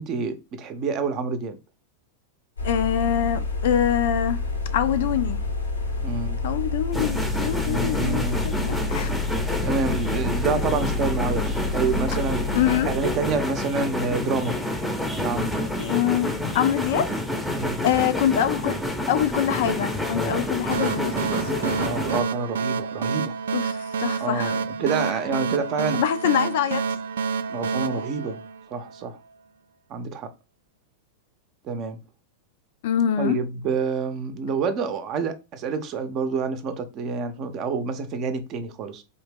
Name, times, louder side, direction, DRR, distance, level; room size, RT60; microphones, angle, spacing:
voice 1, 0.0-1.6 6.0-6.4 7.6-8.4 9.6-12.6 12.9-14.6 15.2-15.5 17.6-17.8 20.1-20.4 21.8-23.3 24.2-26.0 27.5-28.4 28.7-29.2 29.9-30.3 31.6-32.0 33.2-39.0, right 4 dB, 35° right, 0.7 m, -28 dB
sound 1, 2.6-13.4, left 3 dB, 80° left, 0.9 m, -28 dB
voice 2, 2.6-4.4 4.7-5.4 6.4-9.1 12.5-12.9 15.8-17.1 17.8-18.8 19.1-21.6 23.5-24.6 25.9-26.9 32.8-33.4, left 10 dB, 55° left, 0.4 m, -24 dB
sound 2, 6.9-22.2, left 1 dB, 5° left, 0.7 m, -28 dB
sound 3, 20.7-29.0, right 5 dB, 65° right, 0.3 m, -28 dB
3.9 x 2.8 x 3.6 m
figure-of-eight pair, 90°, 0 cm